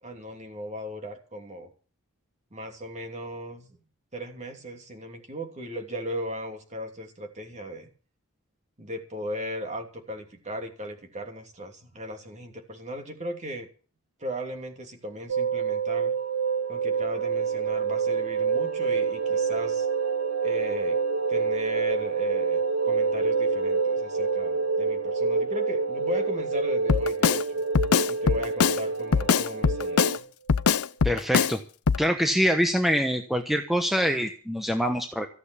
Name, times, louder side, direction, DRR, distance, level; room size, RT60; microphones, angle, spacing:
voice 1, 0.0-1.7 2.5-3.7 4.1-7.9 8.8-13.7 14.2-16.1 16.7-19.9 20.4-21.0 21.3-22.6 22.8-27.6 28.1-30.2, equal, 30° right, 5 dB, 3.0 m, -36 dB
sound 1, 15.3-30.2 30.5-30.6, right 6 dB, 55° right, 2.1 m, -29 dB
sound 2, 16.0-30.2, right 2 dB, 70° right, 1.1 m, -31 dB
Drum kit, 26.9-27.4 27.8-28.8 29.1-30.2 30.5-31.5 31.9-32.0, left 6 dB, 75° left, 0.6 m, -22 dB
voice 2, 31.0-31.6 32.0-35.3, equal, ahead, 5 dB, 1.2 m, -25 dB
15.0 x 8.0 x 8.5 m, 0.40 s
head